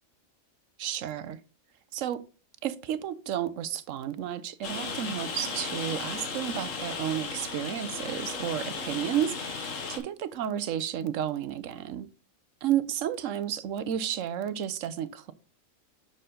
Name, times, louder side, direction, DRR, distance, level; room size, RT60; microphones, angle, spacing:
voice 1, 0.8-1.4 1.9-2.2 2.6-12.1 12.6-15.3, right 10 dB, 75° right, 1.0 m, -32 dB
Rain, 4.6-10.0, left 4 dB, 70° left, 1.6 m, -35 dB
6.7 x 6.5 x 3.7 m
omnidirectional pair, 1.4 m